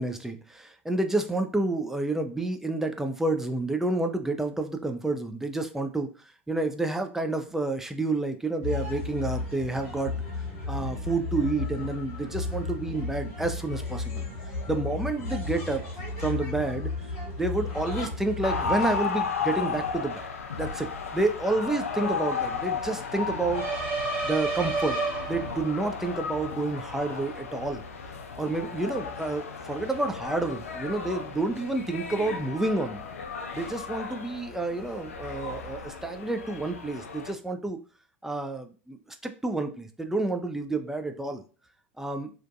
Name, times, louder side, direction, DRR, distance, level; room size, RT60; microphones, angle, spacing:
voice 1, 0.0-6.1 6.5-10.1 10.7-14.2 14.7-15.8 16.2-16.9 17.4-20.2 20.6-23.6 24.2-25.0 25.3-27.8 28.4-33.0 33.5-37.8 38.2-39.0 39.2-41.4 42.0-42.3, right 2 dB, 5° right, 6 dB, 0.3 m, -29 dB
sound 1, 8.6-19.0, left 3 dB, 65° left, 1.0 m, -34 dB
sound 2, 18.4-37.3, left 5 dB, 80° left, 0.3 m, -34 dB
sound 3, 23.5-25.9, right 4 dB, 25° right, 1.4 m, -30 dB
2.5 x 2.2 x 2.5 m, 0.37 s
figure-of-eight pair, 80°, 7 cm